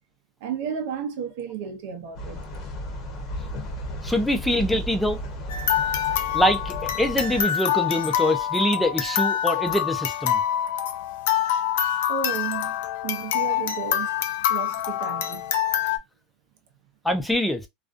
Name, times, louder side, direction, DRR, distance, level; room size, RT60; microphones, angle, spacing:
voice 1, 0.4-2.5 12.1-14.1 14.5-15.5, right 7 dB, 65° right, 0.6 m, -33 dB
sound 1, 2.2-7.4, equal, 35° left, 0.7 m, -34 dB
voice 2, 4.0-5.2 6.3-10.4 17.0-17.7, left 1 dB, 5° left, 0.4 m, -24 dB
sound 2, 5.5-16.0, left 10 dB, 80° left, 0.4 m, -25 dB
2.4 x 2.2 x 2.4 m
supercardioid pair, 170°, 0 cm